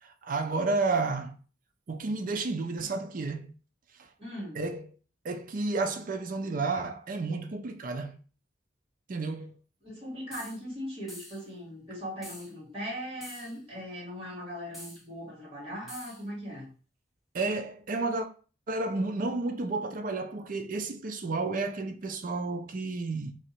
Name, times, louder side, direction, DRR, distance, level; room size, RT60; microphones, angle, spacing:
voice 1, 0.0-1.4 1.9-3.5 4.0-4.1 4.5-4.9 5.2-8.2 9.1-9.5 17.3-18.3 18.7-23.4, right 3 dB, 45° right, 0.4 m, -31 dB
voice 2, 4.2-4.6 9.8-16.7, equal, 30° right, 2.2 m, -39 dB
sound 1, 10.3-10.6 11.1-11.5 12.2-12.5 13.2-13.6 14.7-15.0 15.9-16.2, equal, ahead, 1.0 m, -46 dB
3.1 x 2.8 x 4.4 m
head